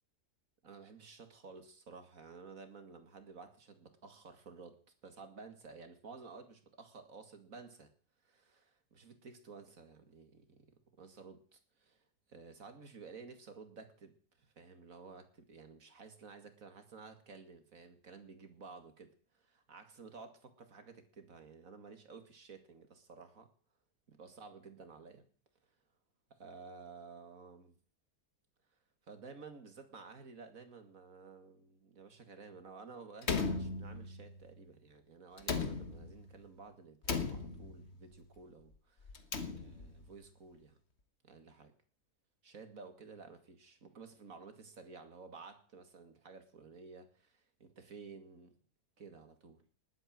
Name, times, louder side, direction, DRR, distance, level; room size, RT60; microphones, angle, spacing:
voice 1, 0.6-7.9 8.2-12.0 12.3-23.5 24.1-25.2 26.4-27.8 29.1-39.1 39.5-40.8 41.2-41.7 42.4-48.5 49.0-49.6, right 4 dB, 55° right, 8 dB, 2.6 m, -53 dB
Slam, 33.2-34.4 35.4-36.3 37.0-37.9 39.1-40.0, left 4 dB, 45° left, 1.6 m, -37 dB
19.5 x 9.2 x 7.7 m, 0.43 s
omnidirectional pair, 1.7 m